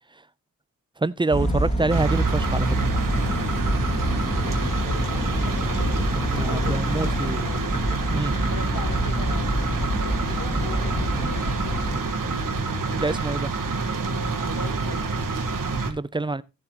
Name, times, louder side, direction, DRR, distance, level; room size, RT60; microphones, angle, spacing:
voice 1, 1.0-2.8 6.3-7.4 8.1-8.4 13.0-13.5 15.9-16.4, right 3 dB, 15° right, 0.4 m, -26 dB
sound 1, 1.3-12.0, equal, 20° left, 2.1 m, -27 dB
sound 2, 1.9-15.9, right 3 dB, 65° right, 1.6 m, -27 dB
voice 2, 4.4-7.7 8.5-13.0 13.8-15.2, left 5 dB, 75° left, 1.7 m, -40 dB
15.0 x 7.6 x 2.9 m
wide cardioid pair, 120°, 35 cm